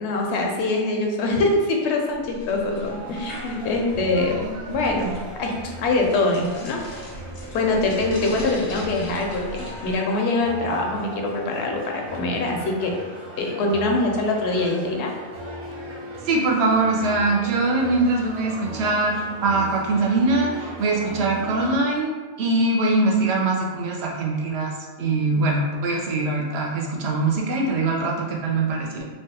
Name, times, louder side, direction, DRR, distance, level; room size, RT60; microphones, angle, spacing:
voice 1, 0.0-5.1 5.4-6.8 7.5-12.9 13.4-15.1 25.3-25.4, left 2 dB, 90° left, 1 dB, 0.9 m, -24 dB
sound 1, 2.1-10.0, left 1 dB, 50° left, 0.4 m, -40 dB
sound 2, 2.9-21.8, right 1 dB, 40° right, 0.5 m, -38 dB
voice 2, 16.2-22.1 22.4-24.7 25.0-29.0, right 2 dB, 75° right, -2 dB, 0.9 m, -22 dB
3.2 x 2.2 x 2.7 m, 1.4 s
omnidirectional pair, 1.1 m